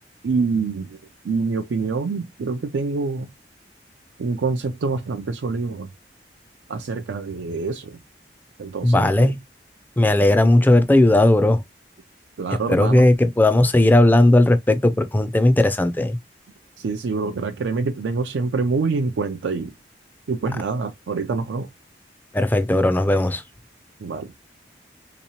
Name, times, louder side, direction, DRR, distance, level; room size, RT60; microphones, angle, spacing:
voice 1, 0.2-1.0 1.2-3.3 4.2-5.9 6.7-8.0 8.6-9.3 12.4-13.1 16.8-19.7 20.3-21.7 24.0-24.3, right 4 dB, 85° right, 0.4 m, -26 dB
voice 2, 8.8-9.4 10.0-11.6 12.5-16.2 22.3-23.4, left 1 dB, 10° left, 0.3 m, -16 dB
3.6 x 2.9 x 2.7 m
head